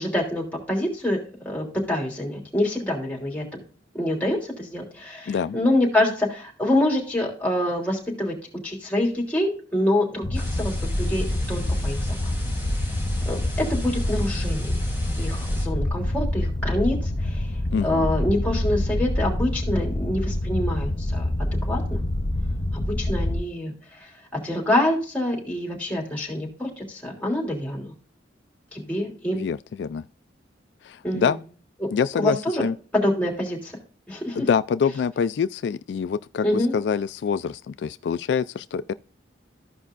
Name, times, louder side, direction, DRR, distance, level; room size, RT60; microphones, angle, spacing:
voice 1, 0.0-3.6 3.9-8.3 8.6-12.3 13.2-14.7 15.2-17.5 17.8-21.3 21.7-22.0 22.7-24.1 24.4-27.9 28.7-29.4 31.0-31.4 31.8-31.9 32.2-32.6 32.9-33.7 34.1-34.5 36.4-36.7, left 1 dB, 10° left, 3.1 m, -26 dB
voice 2, 5.3-5.6 17.7-18.1 29.3-30.0 30.8-31.4 31.9-32.7 34.4-38.9, left 6 dB, 70° left, 0.3 m, -25 dB
sound 1, 10.2-23.4, left 1 dB, 40° left, 0.8 m, -26 dB
sound 2, 10.3-15.7, left 1 dB, 10° right, 2.3 m, -41 dB
15.0 x 5.3 x 2.5 m
head